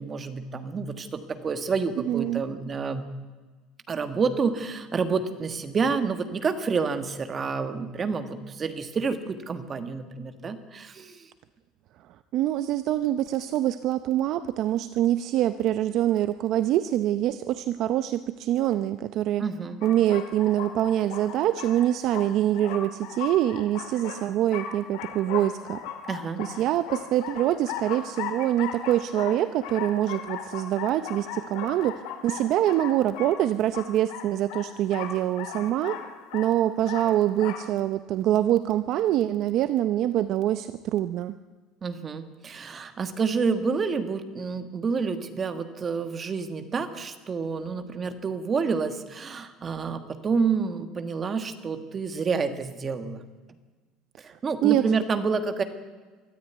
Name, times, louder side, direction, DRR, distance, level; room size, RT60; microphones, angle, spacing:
voice 1, 0.0-3.1 3.9-11.3 19.4-19.8 26.1-26.5 41.8-53.2 54.2-55.6, right 5 dB, 20° right, 9 dB, 1.4 m, -29 dB
voice 2, 2.1-2.4 12.3-19.4 19.8-25.8 26.4-36.0 36.3-41.3 54.6-54.9, right 12 dB, 45° right, 12 dB, 0.6 m, -25 dB
sound 1, 19.8-37.7, left 9 dB, 75° left, 2.7 m, -38 dB
23.0 x 13.5 x 9.3 m, 1.4 s
cardioid pair, 170°, 0 cm